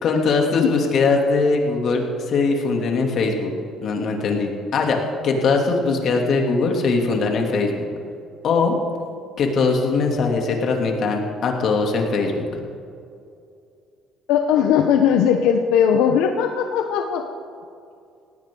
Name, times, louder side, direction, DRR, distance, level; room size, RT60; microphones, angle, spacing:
voice 1, 0.0-3.5 3.8-5.0 5.2-7.9 8.4-8.7 9.4-12.6, left 4 dB, 55° left, 1 dB, 2.9 m, -21 dB
voice 2, 14.3-17.2, left 8 dB, 85° left, 5 dB, 0.9 m, -18 dB
18.5 x 17.5 x 3.9 m, 2.5 s
cardioid pair, 115°, 0 cm